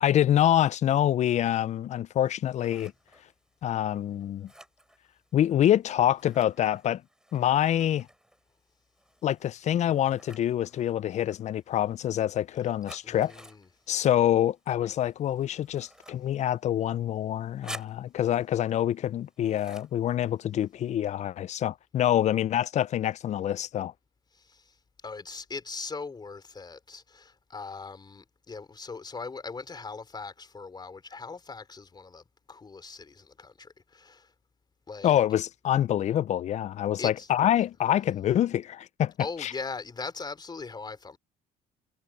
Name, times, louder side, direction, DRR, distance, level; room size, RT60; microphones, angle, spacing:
voice 1, 0.0-2.9 3.6-4.5 5.3-7.0 7.3-8.1 9.2-13.3 13.9-23.9 35.0-39.1 39.4-39.5, left 11 dB, 45° left, 0.4 m, -26 dB
Scissors, 2.2-21.0, right 1 dB, 5° right, 6.6 m, -53 dB
voice 2, 13.0-13.7 24.3-24.7 25.0-34.3 34.9-35.2 37.0-37.3 39.2-41.2, left 4 dB, 25° left, 3.5 m, -40 dB
cardioid pair, 110°, 17 cm